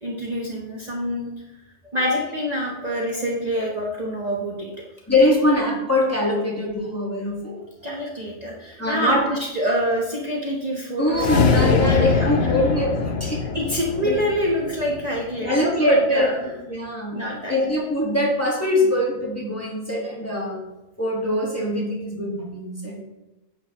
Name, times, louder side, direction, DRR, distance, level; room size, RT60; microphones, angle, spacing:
voice 1, 0.0-1.3 1.9-4.7 7.4-7.6 7.8-12.5 13.5-16.4 17.1-17.6, equal, 35° right, -3 dB, 1.2 m, -26 dB
voice 2, 5.1-7.6 8.8-9.2 11.0-13.4 14.0-14.2 15.4-16.3 16.7-17.2 17.5-20.6 21.0-23.0, left 1 dB, 10° left, -4 dB, 1.8 m, -22 dB
sound 1, 11.1-15.5, left 4 dB, 60° left, 1.0 m, -23 dB
9.6 x 7.4 x 3.1 m, 1.0 s
omnidirectional pair, 1.2 m